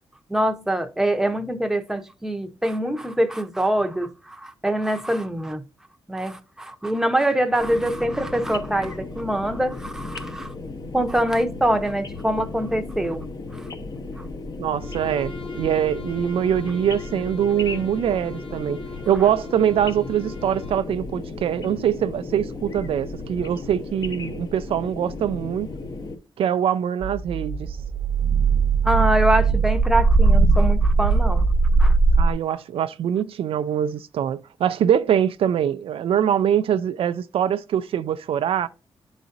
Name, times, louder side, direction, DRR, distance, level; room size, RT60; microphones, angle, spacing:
voice 1, 0.3-5.6 6.1-10.5 10.9-13.3 13.5-13.6 14.2-14.3 28.8-31.4 31.8-32.0, right 1 dB, 5° right, 0.8 m, -24 dB
sound 1, 7.6-26.2, left 3 dB, 40° left, 0.9 m, -35 dB
voice 2, 14.6-18.8 19.1-25.7 26.4-27.8 32.2-38.7, right 9 dB, 75° right, 0.4 m, -23 dB
Bowed string instrument, 14.7-20.9, left 4 dB, 75° left, 2.2 m, -41 dB
sound 2, 27.0-32.3, right 4 dB, 40° right, 0.8 m, -19 dB
10.5 x 4.0 x 2.5 m
cardioid pair, 100°, 10 cm